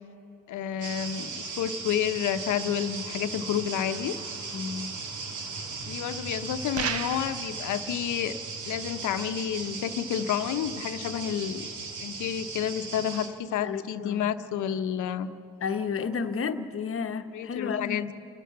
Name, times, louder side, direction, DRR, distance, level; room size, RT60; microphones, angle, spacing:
voice 1, 0.5-4.2 5.9-8.4 8.7-11.7 12.0-15.3 17.3-18.1, left 9 dB, 75° left, 10 dB, 0.9 m, -30 dB
sound 1, 0.8-13.3, right 4 dB, 75° right, 2.2 m, -37 dB
voice 2, 4.5-5.0 13.6-14.3 15.6-18.0, left 6 dB, 45° left, 8 dB, 1.1 m, -32 dB
sound 2, 6.7-7.5, right 7 dB, 55° right, 0.9 m, -32 dB
29.5 x 12.0 x 7.4 m, 2.8 s
cardioid pair, 90°, 30 cm